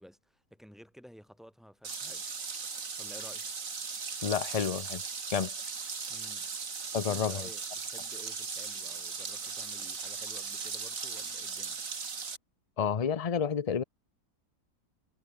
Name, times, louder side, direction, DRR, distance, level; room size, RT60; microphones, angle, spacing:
voice 1, 0.0-2.3 3.0-3.5 6.1-6.5 6.9-11.8, equal, ahead, 4.6 m, -53 dB
sound 1, 1.8-12.4, right 5 dB, 55° right, 2.5 m, -38 dB
voice 2, 4.2-5.0 5.3-5.5 6.9-7.5 12.8-13.8, left 7 dB, 65° left, 0.3 m, -30 dB
omnidirectional pair, 1.8 m